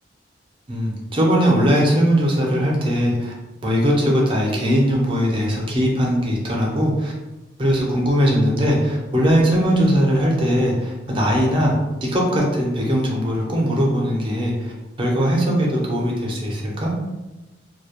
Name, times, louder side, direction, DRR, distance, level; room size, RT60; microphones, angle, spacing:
voice 1, 0.7-3.3 3.6-7.1 7.6-14.7 15.0-16.9, equal, 30° right, -2 dB, 0.5 m, -20 dB
2.2 x 2.0 x 2.8 m, 1.1 s
head